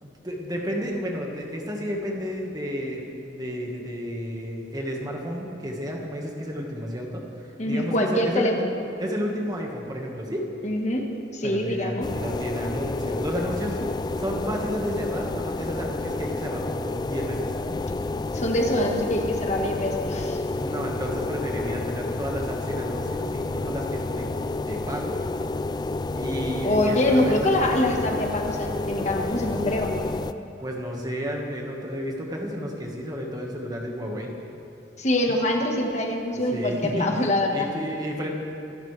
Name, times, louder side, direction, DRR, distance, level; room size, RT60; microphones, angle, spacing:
voice 1, 0.0-8.5 9.0-10.5 11.4-13.8 14.2-17.5 20.5-24.3 24.6-25.2 26.1-27.4 30.6-34.3 36.5-38.3, equal, 20° right, 0 dB, 1.6 m, -32 dB
voice 2, 7.6-8.7 10.6-11.1 11.3-12.0 18.3-20.4 26.6-30.1 35.0-37.7, left 1 dB, 40° left, 1 dB, 1.5 m, -24 dB
sound 1, 12.0-30.3, left 2 dB, 25° left, 0.3 m, -30 dB
25.0 x 12.5 x 3.4 m, 2.9 s
head